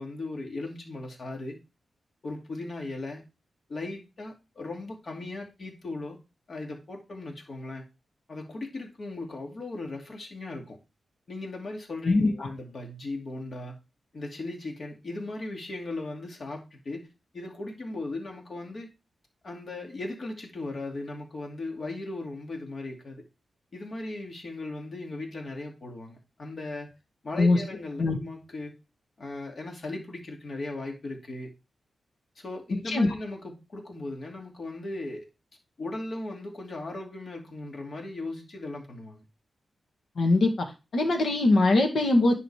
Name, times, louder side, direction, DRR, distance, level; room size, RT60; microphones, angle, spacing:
voice 1, 0.0-1.6 2.2-3.2 3.7-6.2 6.5-7.8 8.3-10.8 11.3-13.8 14.1-17.1 17.3-18.9 19.4-23.2 23.7-26.9 27.2-28.7 29.2-31.5 32.4-35.3 35.8-39.2, left 2 dB, 45° left, 2.6 m, -37 dB
voice 2, 40.2-40.7 40.9-42.3, left 2 dB, 65° left, 2.2 m, -21 dB
10.0 x 4.0 x 5.0 m
wide cardioid pair, 125°, 0 cm